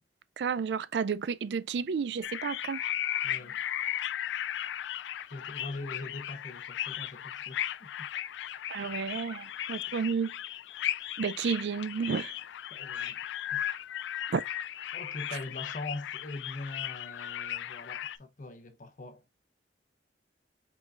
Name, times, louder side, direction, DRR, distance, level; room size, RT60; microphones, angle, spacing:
voice 1, 0.4-2.8 8.7-10.3 11.2-12.3 14.3-14.4, right 6 dB, 70° right, 0.4 m, -31 dB
sound 1, 2.2-18.2, left 11 dB, 85° left, 0.3 m, -36 dB
voice 2, 3.2-3.6 5.2-8.1 9.8-10.0 12.7-13.2 13.5-13.7 14.9-19.2, left 2 dB, 45° left, 0.7 m, -42 dB
4.7 x 3.9 x 2.4 m
head